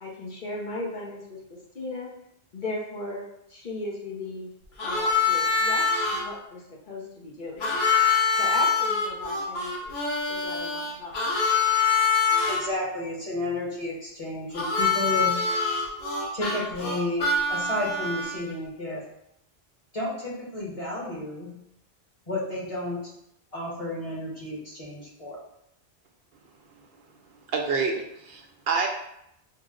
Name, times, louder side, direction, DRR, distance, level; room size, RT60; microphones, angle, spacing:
voice 1, 0.0-2.1 2.5-4.5 4.8-7.6 8.4-9.9 10.3-11.2, left 2 dB, 55° left, -3 dB, 0.8 m, -36 dB
Harmonica, 4.8-6.2 7.6-12.6 14.5-18.5, left 4 dB, 75° left, 1.1 m, -25 dB
voice 2, 12.5-15.4 16.3-19.0 19.9-21.5 22.3-23.1 23.5-25.4, left 1 dB, 35° left, -5 dB, 1.2 m, -32 dB
voice 3, 27.5-28.9, right 5 dB, 70° right, 2 dB, 0.8 m, -27 dB
4.5 x 2.0 x 3.6 m, 0.77 s
omnidirectional pair, 1.1 m